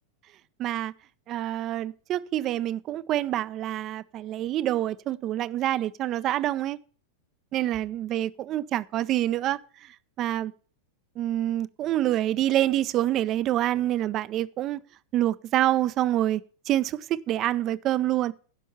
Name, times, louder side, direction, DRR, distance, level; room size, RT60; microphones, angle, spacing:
voice 1, 0.6-0.9 1.3-6.8 7.5-9.9 10.2-10.5 11.2-14.8 15.1-18.3, right 13 dB, 35° right, 0.4 m, -27 dB
11.5 x 5.4 x 6.9 m
figure-of-eight pair, 90°, 0 cm